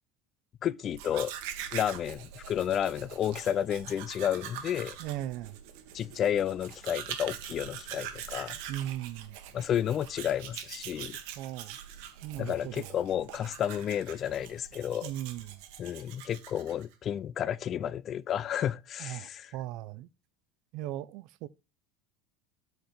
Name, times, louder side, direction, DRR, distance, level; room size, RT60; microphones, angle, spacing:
voice 1, 0.6-1.3 1.7-5.0 5.9-8.6 9.5-11.2 12.4-15.1 15.8-19.5, left 10 dB, 30° left, 0.3 m, -31 dB
Domestic sounds home sounds, 0.9-16.9, right 10 dB, 65° right, 1.4 m, -43 dB
voice 2, 5.0-5.6 8.7-9.4 11.4-11.8 12.2-13.0 15.0-15.6 19.0-20.1 20.7-21.5, right 13 dB, 50° right, 0.5 m, -38 dB
8.0 x 4.4 x 5.0 m
cardioid pair, 165°, 0 cm